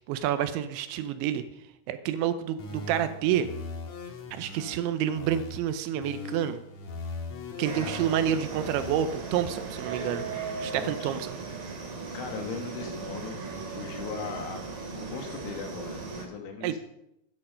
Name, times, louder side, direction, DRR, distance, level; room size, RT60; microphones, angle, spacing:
voice 1, 0.1-1.4 1.9-3.5 4.3-6.6 7.6-10.2 10.6-11.4 16.6-16.8, right 10 dB, 80° right, 11 dB, 2.9 m, -28 dB
sound 1, 2.6-5.6 6.0-9.0, left 3 dB, 60° left, 1.8 m, -40 dB
sound 2, 7.6-16.3, right 4 dB, 50° right, 4.0 m, -37 dB
voice 2, 10.7-11.2 12.1-14.6 14.9-16.8, left 5 dB, 80° left, 4 dB, 4.3 m, -39 dB
13.5 x 9.9 x 5.5 m, 0.81 s
omnidirectional pair, 5.6 m